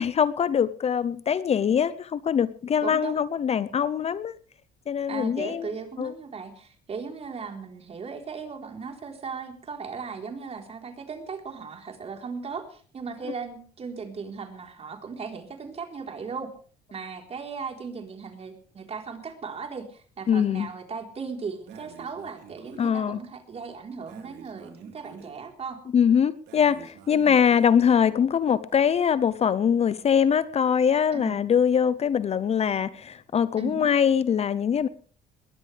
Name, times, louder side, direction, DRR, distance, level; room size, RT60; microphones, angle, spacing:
voice 1, 0.0-4.4 4.9-5.7 6.0-6.1 20.3-20.7 22.8-23.2 25.9-34.9, left 7 dB, 40° left, 16 dB, 0.7 m, -23 dB
voice 2, 2.8-3.2 5.1-16.5 16.9-25.8 27.1-27.4 31.1-31.4 33.6-33.9, right 5 dB, 35° right, 3 dB, 4.0 m, -37 dB
Breathing, 21.7-23.0 24.1-25.4 26.5-27.8, right 7 dB, 80° right, 3.9 m, -49 dB
21.0 x 17.0 x 3.4 m, 0.43 s
cardioid pair, 110°, 17 cm